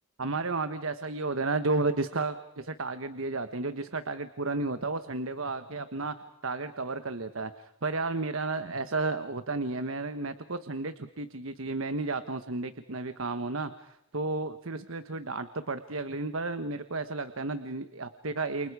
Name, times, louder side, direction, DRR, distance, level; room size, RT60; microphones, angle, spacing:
voice 1, 0.2-6.1 6.4-18.7, right 3 dB, 65° right, 10 dB, 1.3 m, -32 dB
29.0 x 29.0 x 4.9 m, 0.82 s
head